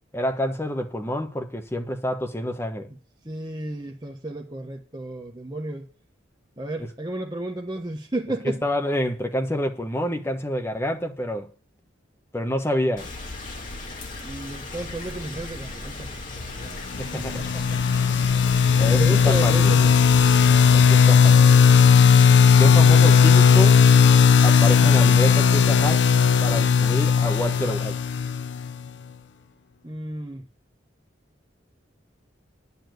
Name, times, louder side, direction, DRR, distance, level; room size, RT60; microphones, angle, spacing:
voice 1, 0.1-2.9 6.8-6.9 8.4-11.5 12.3-13.1 17.0-17.4 18.8-19.8 20.7-21.5 22.6-23.8 24.4-26.1 26.4-28.0, left 1 dB, 15° left, 1.3 m, -28 dB
voice 2, 3.2-5.9 6.6-8.6 14.2-16.1 16.4-16.8 17.1-17.8 18.1-18.5 18.9-19.9 29.8-30.4, right 2 dB, 20° right, 1.1 m, -32 dB
Rain, 13.0-21.0, left 2 dB, 40° left, 2.2 m, -36 dB
sound 1, 16.9-28.7, left 6 dB, 65° left, 0.5 m, -16 dB
10.0 x 7.0 x 7.8 m
head